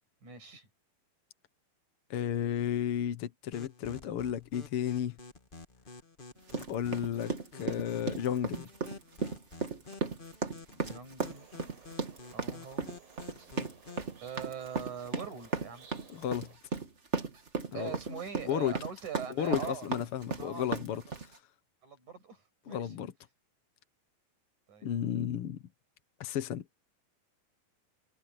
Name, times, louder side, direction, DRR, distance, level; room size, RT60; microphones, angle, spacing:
voice 1, 0.2-0.7 10.7-11.6 12.3-12.9 14.2-15.9 17.7-20.1 20.4-21.0 21.8-22.9 24.7-24.9, right 7 dB, 55° right, 7.6 m, -42 dB
voice 2, 2.1-5.2 6.7-8.7 16.1-16.5 17.7-18.2 18.5-18.7 19.4-21.0 22.7-23.1 24.8-25.6 26.2-26.6, left 10 dB, 70° left, 1.3 m, -33 dB
sound 1, 3.5-14.1, left 4 dB, 90° left, 0.4 m, -50 dB
sound 2, 6.5-21.4, right 4 dB, 30° right, 1.4 m, -35 dB
sound 3, 11.2-16.6, right 7 dB, 70° right, 7.0 m, -58 dB
omnidirectional pair, 4.2 m